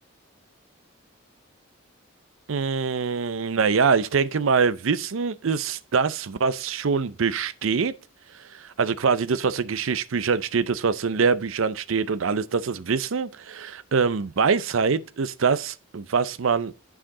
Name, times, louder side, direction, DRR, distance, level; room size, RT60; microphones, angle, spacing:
voice 1, 2.5-7.9 8.5-16.7, right 5 dB, 70° right, 0.5 m, -24 dB
8.7 x 4.9 x 3.7 m
head